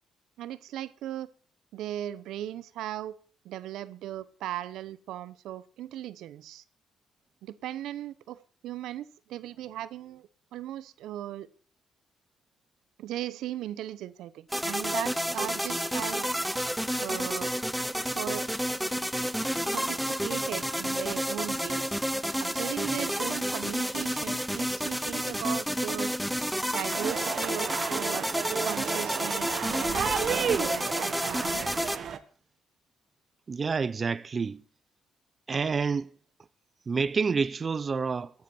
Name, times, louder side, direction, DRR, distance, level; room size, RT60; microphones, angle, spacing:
voice 1, 0.4-1.3 1.7-3.2 3.4-6.6 7.4-11.5 13.0-16.3 17.0-17.5 18.0-18.5 19.7-22.0 22.4-26.1 26.7-28.3 28.6-31.9, right 12 dB, 85° right, 0.7 m, -38 dB
sound 1, 14.5-32.0, equal, ahead, 0.8 m, -30 dB
sound 2, 26.9-32.2, right 7 dB, 60° right, 1.2 m, -32 dB
voice 2, 33.5-34.6 35.5-36.1 36.9-38.3, right 5 dB, 35° right, 0.5 m, -28 dB
15.5 x 11.5 x 4.3 m
cardioid pair, 90°, 0 cm